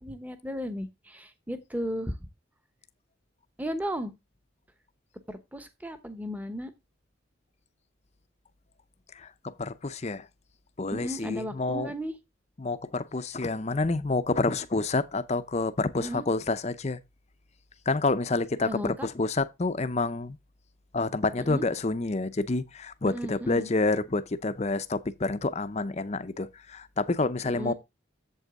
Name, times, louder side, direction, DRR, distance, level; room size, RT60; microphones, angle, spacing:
voice 1, 0.0-2.2 3.6-4.1 5.3-6.7 10.9-12.1 16.0-16.3 18.6-19.1 21.4-21.7 23.0-23.7 27.5-27.7, equal, 10° right, 0.9 m, -35 dB
voice 2, 9.2-10.2 10.8-11.9 12.6-17.0 17.9-20.4 20.9-27.7, left 3 dB, 30° left, 0.6 m, -28 dB
8.1 x 7.7 x 3.6 m
head